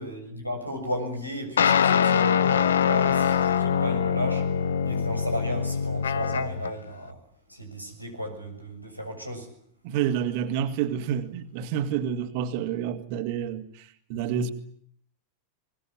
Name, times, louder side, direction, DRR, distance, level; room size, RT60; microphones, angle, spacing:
voice 1, 0.0-4.5 4.8-7.2 7.5-9.5, equal, 90° left, 6.8 m, -34 dB
sound 1, 1.6-6.7, left 7 dB, 65° left, 1.1 m, -23 dB
voice 2, 9.8-14.5, right 9 dB, 45° right, 2.3 m, -29 dB
23.0 x 20.5 x 9.5 m
figure-of-eight pair, 90°, 0 cm